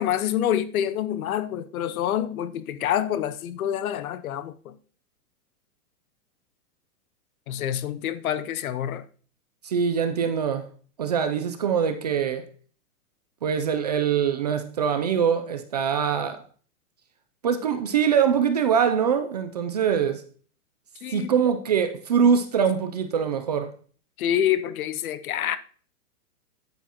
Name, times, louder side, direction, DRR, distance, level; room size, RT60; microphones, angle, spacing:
voice 1, 0.0-4.8 7.5-9.0 21.0-21.3 24.2-25.6, left 10 dB, 65° left, 0.9 m, -27 dB
voice 2, 9.6-10.7 11.0-12.5 13.4-16.4 17.4-20.2 21.1-23.7, right 7 dB, 30° right, 0.4 m, -23 dB
9.2 x 9.1 x 2.9 m
hypercardioid pair, 160°, 45 cm